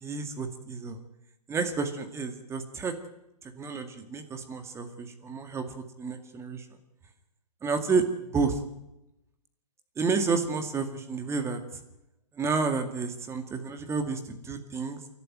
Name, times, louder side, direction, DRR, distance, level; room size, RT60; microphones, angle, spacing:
voice 1, 0.0-1.0 1.5-2.9 3.6-5.7 6.0-6.6 7.6-8.0 8.3-8.6 10.0-11.6 12.4-15.0, right 4 dB, 15° right, 7 dB, 2.1 m, -30 dB
28.0 x 12.0 x 9.3 m, 0.91 s
hypercardioid pair, 135°, 21 cm